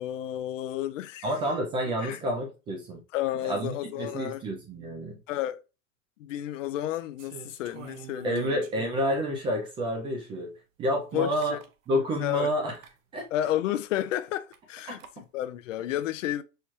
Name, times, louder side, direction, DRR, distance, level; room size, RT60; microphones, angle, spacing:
voice 1, 0.0-1.3 2.0-2.2 3.1-4.4 5.3-5.6 6.2-8.7 11.1-11.6 12.2-12.5 13.3-16.4, left 13 dB, 70° left, 0.5 m, -31 dB
voice 2, 1.2-3.0 3.5-5.2 8.2-10.5 10.8-11.6 11.9-12.7 13.1-13.3 14.9-15.0, equal, 15° right, 0.4 m, -29 dB
sound 1, 7.2-9.2 9.8-9.9 11.1-11.2 11.4-11.7 12.7-12.9 14.5-15.1, right 8 dB, 75° right, 0.7 m, -47 dB
4.5 x 2.3 x 3.0 m
hypercardioid pair, 135°, 39 cm